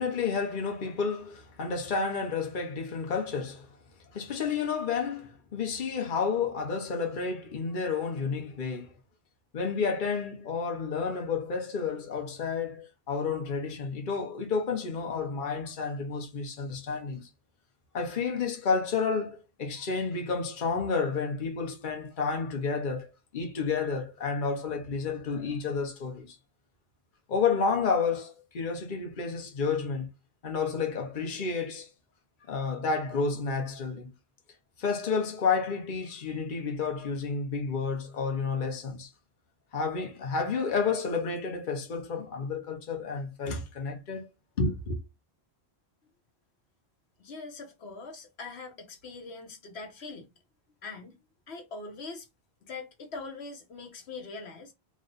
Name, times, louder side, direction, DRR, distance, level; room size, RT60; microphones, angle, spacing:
voice 1, 0.0-3.7 4.1-8.9 9.5-17.3 17.9-23.1 23.3-26.4 27.3-30.1 30.4-31.9 32.5-34.1 34.8-39.1 39.7-44.3 44.6-45.0, left 5 dB, 55° left, 1.0 m, -30 dB
voice 2, 47.2-50.3 50.8-51.1 51.5-52.3 52.6-54.7, left 3 dB, 80° left, 1.1 m, -42 dB
3.1 x 2.5 x 3.9 m
omnidirectional pair, 1.1 m